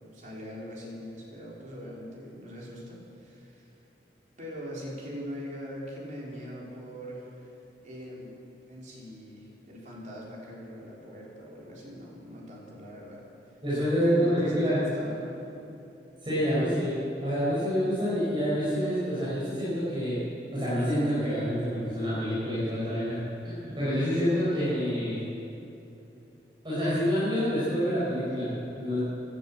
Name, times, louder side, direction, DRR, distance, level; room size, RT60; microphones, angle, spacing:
voice 1, 0.0-3.7 4.4-7.5 7.8-13.5 13.8-15.5, equal, 45° right, -4 dB, 3.8 m, -42 dB
voice 2, 13.6-14.8 16.2-16.9 17.2-20.2 20.5-25.2 26.6-29.0, equal, 30° right, -10 dB, 5.0 m, -27 dB
16.5 x 11.5 x 7.4 m, 2.9 s
head